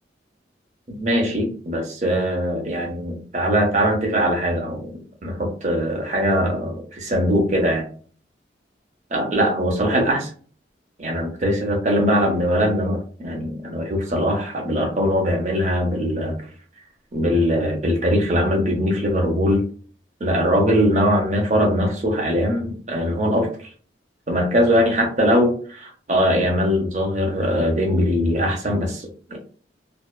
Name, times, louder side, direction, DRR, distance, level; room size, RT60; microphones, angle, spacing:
voice 1, 0.9-4.9 5.2-7.8 9.1-10.3 11.0-16.4 17.1-19.6 20.2-23.7 24.3-29.4, equal, 40° right, 1 dB, 0.7 m, -21 dB
2.7 x 2.2 x 2.3 m, 0.43 s
head